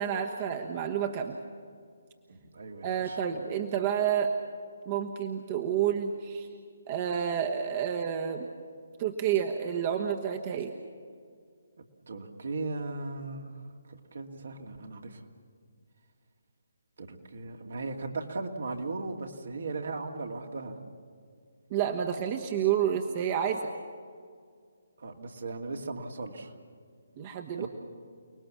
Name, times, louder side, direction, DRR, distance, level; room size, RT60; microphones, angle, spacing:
voice 1, 0.0-1.4 2.8-4.3 4.8-6.5 6.9-8.5 9.0-10.7 21.7-23.7 27.2-27.7, right 8 dB, 30° right, 3 dB, 1.3 m, -29 dB
voice 2, 2.3-3.2 11.8-13.6 13.9-15.2 17.0-20.8 25.0-26.5 27.6-27.7, right 3 dB, 60° right, 3 dB, 2.4 m, -37 dB
29.5 x 19.5 x 7.3 m, 2.1 s
figure-of-eight pair, 140°, 0 cm